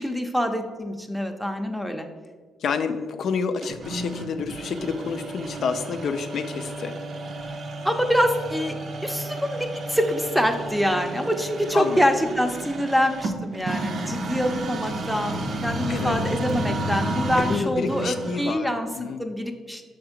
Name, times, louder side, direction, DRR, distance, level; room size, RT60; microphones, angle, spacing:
voice 1, 0.0-2.1 7.8-8.7 9.0-18.9 19.2-19.8, equal, ahead, 5 dB, 0.6 m, -25 dB
voice 2, 2.6-7.0 11.7-12.0 15.9-16.2 17.4-19.2, left 5 dB, 60° left, 7 dB, 0.4 m, -29 dB
sound 1, 3.6-18.6, right 1 dB, 55° right, 0.6 m, -32 dB
5.6 x 3.5 x 5.1 m, 1.5 s
cardioid pair, 90°, 0 cm